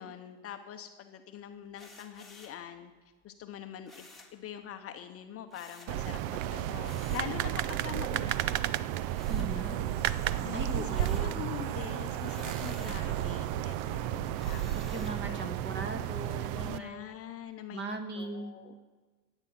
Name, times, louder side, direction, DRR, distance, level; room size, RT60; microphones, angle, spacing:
voice 1, 0.0-2.9 3.2-8.7 9.3-10.1 10.4-14.6 15.3-15.4 16.2-17.8 18.1-18.7, left 10 dB, 30° left, 7 dB, 0.8 m, -44 dB
sound 1, 1.7-2.6 3.9-4.4 5.5-6.0 6.8-7.3 9.1-10.0 10.4-11.4 12.2-13.1 14.4-15.2, left 2 dB, ahead, 1.8 m, -53 dB
sound 2, 5.9-16.8, right 12 dB, 65° right, 0.7 m, -32 dB
voice 2, 9.3-9.8 10.5-11.4 12.9-13.5 14.7-17.1 17.7-18.5, right 2 dB, 25° right, 7 dB, 1.6 m, -39 dB
sound 3, 9.3-14.6, right 7 dB, 90° right, 1.4 m, -46 dB
14.0 x 9.1 x 7.3 m, 1.4 s
supercardioid pair, 140°, 44 cm